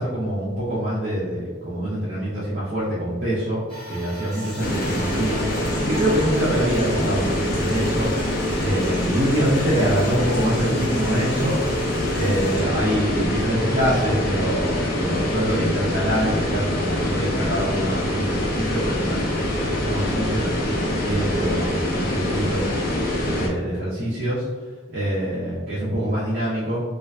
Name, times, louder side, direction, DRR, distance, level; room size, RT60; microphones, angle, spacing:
voice 1, 0.0-5.4 5.8-8.3 8.6-11.6 12.1-22.6 23.3-24.5 24.9-26.8, right 1 dB, 50° right, -9 dB, 0.6 m, -25 dB
Cinematic Bell, 3.7-12.3 12.9-13.0 14.1-14.2, right 1 dB, 25° left, 1.2 m, -42 dB
sound 1, 4.3-12.6, equal, ahead, 1.0 m, -43 dB
sound 2, 4.6-23.5, left 1 dB, 50° left, 0.5 m, -24 dB
2.5 x 2.3 x 2.2 m, 1.4 s
head